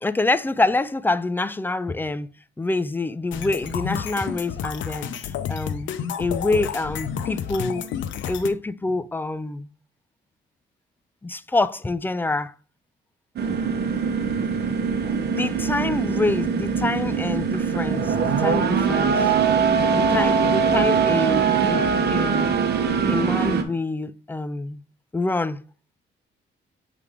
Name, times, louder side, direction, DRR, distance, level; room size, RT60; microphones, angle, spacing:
voice 1, 0.0-2.3 2.6-7.9 8.3-9.7 11.2-12.5 15.3-19.3 19.9-22.5 23.1-24.8 25.1-25.6, left 2 dB, 10° left, 0.3 m, -26 dB
sound 1, 3.3-8.5, left 8 dB, 75° left, 0.7 m, -30 dB
sound 2, 13.4-23.6, right 6 dB, 55° right, 0.9 m, -22 dB
8.0 x 3.3 x 3.6 m
cardioid pair, 90°, 20 cm